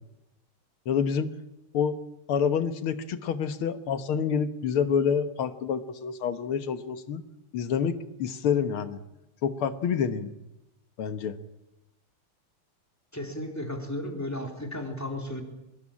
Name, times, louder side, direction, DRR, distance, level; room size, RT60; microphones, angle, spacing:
voice 1, 0.9-1.3 1.7-2.0 2.3-7.2 7.5-9.0 9.4-10.3 11.0-11.4, left 7 dB, 80° left, 10 dB, 2.2 m, -27 dB
voice 2, 13.1-15.4, left 1 dB, 5° left, 2 dB, 3.8 m, -34 dB
24.0 x 20.0 x 8.7 m, 0.93 s
omnidirectional pair, 2.3 m